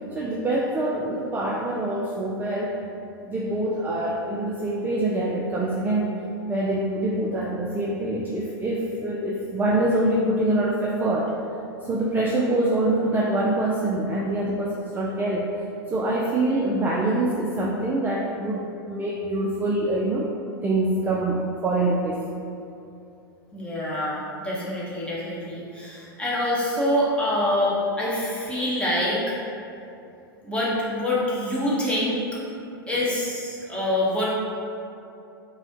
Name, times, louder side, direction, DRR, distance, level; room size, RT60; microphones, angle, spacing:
voice 1, 0.1-2.8 3.2-11.3 11.8-15.5 15.9-20.3 20.6-22.2, right 1 dB, 15° right, -3 dB, 0.4 m, -25 dB
voice 2, 23.5-29.2 30.4-32.2 32.9-34.2, left 1 dB, 10° left, -7 dB, 1.1 m, -25 dB
5.3 x 2.1 x 2.9 m, 2.6 s
hypercardioid pair, 105°, 12 cm